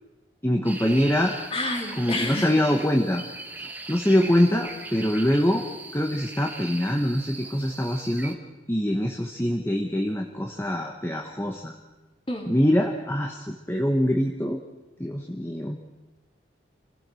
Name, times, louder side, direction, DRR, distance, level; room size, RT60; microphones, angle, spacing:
voice 1, 0.4-1.4 2.0-3.2 3.6-5.6 5.9-8.4 8.7-11.7 12.5-14.6 15.0-15.8, equal, 15° left, 2 dB, 1.3 m, -24 dB
sound 1, 0.6-8.3, right 2 dB, 10° right, 1.3 m, -40 dB
voice 2, 1.5-2.5 12.3-12.5, left 2 dB, 30° left, 2 dB, 3.4 m, -29 dB
27.0 x 16.5 x 6.4 m, 1.1 s
head